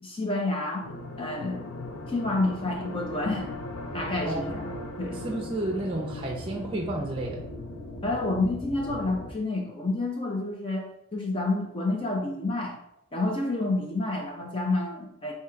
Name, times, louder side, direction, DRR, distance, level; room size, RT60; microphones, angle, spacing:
voice 1, 0.0-0.9 1.2-1.7 2.1-3.5 3.9-4.7 5.0-5.2 8.0-12.8 13.1-15.3, left 2 dB, 25° left, 0 dB, 0.6 m, -29 dB
sound 1, 0.8-9.3, left 1 dB, 85° left, 0.6 m, -38 dB
voice 2, 5.2-7.4, right 1 dB, 25° right, 0 dB, 0.6 m, -31 dB
3.6 x 2.8 x 4.4 m, 0.80 s
head